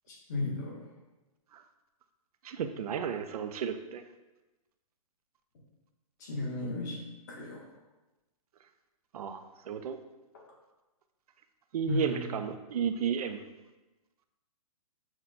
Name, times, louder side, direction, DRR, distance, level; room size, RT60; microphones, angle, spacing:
voice 1, 0.1-0.8 6.2-7.0 7.3-7.7 11.9-12.3, left 3 dB, 30° left, -3 dB, 0.9 m, -35 dB
voice 2, 2.4-4.0 9.1-10.0 11.7-13.4, right 7 dB, 85° right, 8 dB, 0.4 m, -33 dB
5.9 x 2.1 x 3.9 m, 1.1 s
hypercardioid pair, 175°, 19 cm